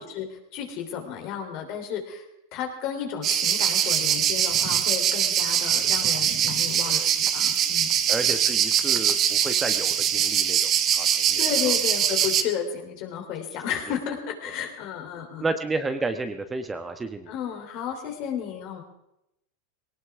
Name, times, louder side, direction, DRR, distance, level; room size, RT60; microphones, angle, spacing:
voice 1, 0.0-2.2 2.5-7.9 11.4-15.5 17.3-18.8, left 8 dB, 55° left, 3 dB, 3.4 m, -33 dB
sound 1, 3.2-12.4, right 9 dB, 40° right, 1.3 m, -23 dB
voice 2, 8.1-11.7 15.4-17.3, right 3 dB, 15° right, 8 dB, 1.1 m, -32 dB
20.0 x 18.0 x 3.6 m, 0.86 s
hypercardioid pair, 110°, 0 cm